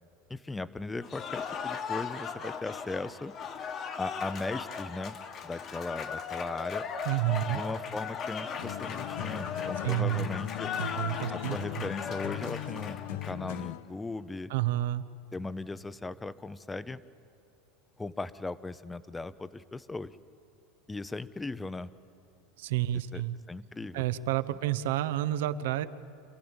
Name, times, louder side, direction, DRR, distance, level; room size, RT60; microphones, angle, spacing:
voice 1, 0.3-3.3 4.0-5.2 5.4-6.9 7.5-10.7 11.3-14.5 15.3-17.0 18.0-20.1 20.9-21.9 23.1-23.2 23.5-24.0, left 3 dB, 10° left, 15 dB, 0.5 m, -38 dB
Cheering / Applause, 1.0-13.6, left 6 dB, 30° left, 1.1 m, -38 dB
voice 2, 7.0-7.6 9.8-10.3 10.8-11.8 14.5-15.0 22.6-23.3 23.9-25.9, right 14 dB, 80° right, 13 dB, 0.8 m, -30 dB
sound 1, 8.6-13.9, left 13 dB, 75° left, 0.7 m, -39 dB
26.5 x 15.5 x 8.9 m, 2.9 s
supercardioid pair, 160°, 0 cm